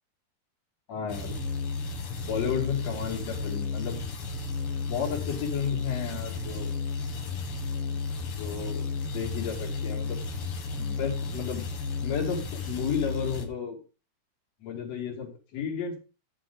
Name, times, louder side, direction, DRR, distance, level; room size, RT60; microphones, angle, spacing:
voice 1, 0.9-1.3 2.3-4.0 4.9-6.7 8.4-10.2 10.8-11.7 12.0-13.8 14.6-16.0, left 7 dB, 45° left, -2 dB, 3.2 m, -33 dB
sound 1, 1.1-13.5, left 4 dB, 65° left, 1.4 m, -33 dB
10.5 x 7.8 x 3.8 m, 0.33 s
omnidirectional pair, 4.5 m